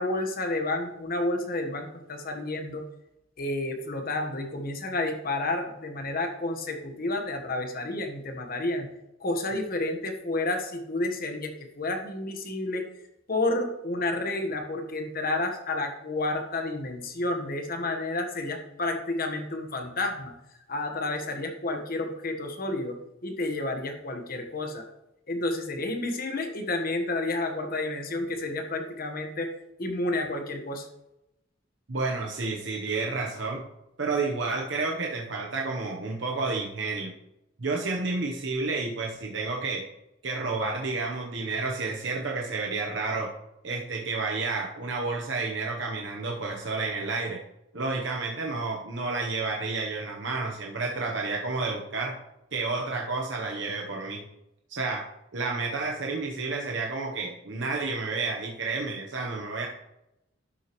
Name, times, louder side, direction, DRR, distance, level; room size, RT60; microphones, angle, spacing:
voice 1, 0.0-2.8 3.4-8.9 9.2-12.8 13.3-20.3 20.7-24.8 25.3-29.5 29.8-30.9, left 2 dB, 50° left, 5 dB, 1.3 m, -30 dB
voice 2, 31.9-33.6 34.0-37.1 37.6-39.8 40.2-43.3 43.6-47.4 47.7-52.2 52.5-54.2 54.7-55.1 55.3-59.7, right 3 dB, 70° right, 0 dB, 1.0 m, -30 dB
12.0 x 6.3 x 3.1 m, 0.87 s
head